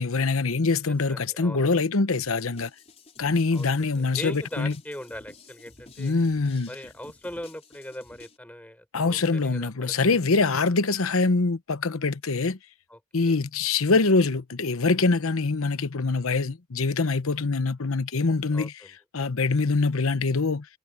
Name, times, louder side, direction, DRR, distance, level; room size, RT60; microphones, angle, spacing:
voice 1, 0.0-2.7 3.2-4.7 6.0-6.7 8.9-12.6 13.1-18.7 19.1-20.7, left 3 dB, 75° left, 0.9 m, -24 dB
voice 2, 0.9-1.7 3.5-3.9 4.2-6.2 6.7-10.4 12.9-13.4 18.1-18.3 18.5-18.9, left 1 dB, 5° left, 5.2 m, -40 dB
sound 1, 2.2-8.4, left 3 dB, 30° left, 4.7 m, -52 dB
head